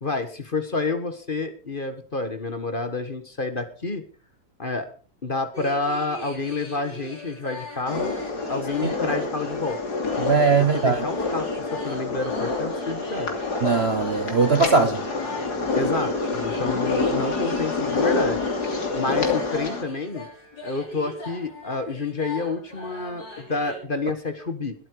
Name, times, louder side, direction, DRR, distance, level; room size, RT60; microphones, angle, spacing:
voice 1, 0.0-4.0 4.6-4.9 5.2-8.2 8.5-9.8 10.7-13.3 15.7-18.4 18.9-20.3 20.6-24.7, left 3 dB, 30° left, 1.5 m, -29 dB
sound 1, 5.5-23.8, left 1 dB, 85° left, 6.6 m, -41 dB
sound 2, 7.9-19.8, left 3 dB, 65° left, 3.3 m, -27 dB
voice 2, 10.2-11.1 13.6-15.0, right 4 dB, 45° right, 1.1 m, -20 dB
21.0 x 8.9 x 4.7 m
omnidirectional pair, 1.9 m